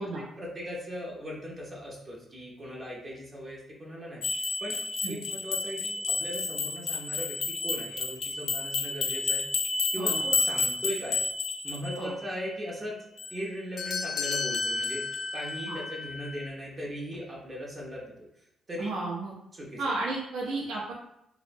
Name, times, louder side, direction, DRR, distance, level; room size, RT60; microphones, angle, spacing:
voice 1, 0.0-4.8 5.1-9.4 9.9-11.2 11.6-13.0 13.3-15.0 15.3-18.1 18.7-18.9 19.5-19.9, equal, 35° right, -4 dB, 0.6 m, -38 dB
sound 1, 4.2-12.4 13.2-16.5, left 4 dB, 60° left, 0.4 m, -31 dB
voice 2, 18.8-19.3 19.8-20.9, right 3 dB, 75° right, -3 dB, 0.5 m, -33 dB
2.6 x 2.0 x 2.5 m, 0.80 s
cardioid pair, 85°, 0 cm